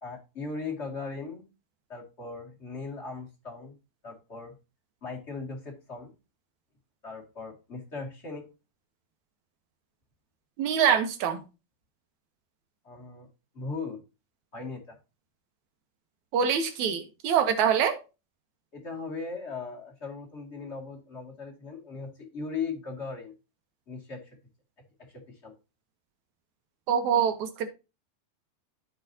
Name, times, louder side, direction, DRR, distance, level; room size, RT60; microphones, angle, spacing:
voice 1, 0.0-1.5 1.9-3.8 4.0-4.6 5.0-6.1 7.0-8.5 12.8-13.3 13.5-14.0 14.5-15.0 18.7-23.3 23.9-24.4 25.0-25.5, left 4 dB, 25° left, 1.9 m, -38 dB
voice 2, 10.6-11.4 16.3-18.0 26.9-27.7, right 8 dB, 65° right, 2.1 m, -24 dB
14.5 x 4.8 x 2.8 m
omnidirectional pair, 4.3 m